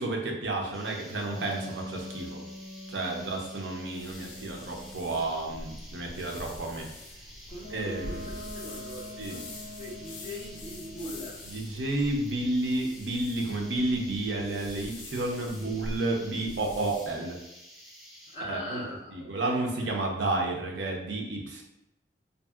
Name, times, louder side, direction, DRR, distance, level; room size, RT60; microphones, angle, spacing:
voice 1, 0.0-2.4 2.9-6.9 7.7-8.3 9.2-9.4 11.5-17.4 18.5-18.8 19.1-21.6, right 2 dB, 90° right, 0 dB, 0.6 m, -31 dB
sound 1, 0.7-18.4, equal, ahead, 0.4 m, -51 dB
sound 2, 1.3-5.3 7.6-11.3, equal, 45° left, 0.7 m, -44 dB
sound 3, 3.9-17.2, left 1 dB, 90° left, 0.5 m, -45 dB
voice 2, 7.5-11.4 15.5-15.7 18.3-20.0, left 1 dB, 25° left, -10 dB, 1.2 m, -41 dB
2.7 x 2.7 x 2.3 m, 0.88 s
head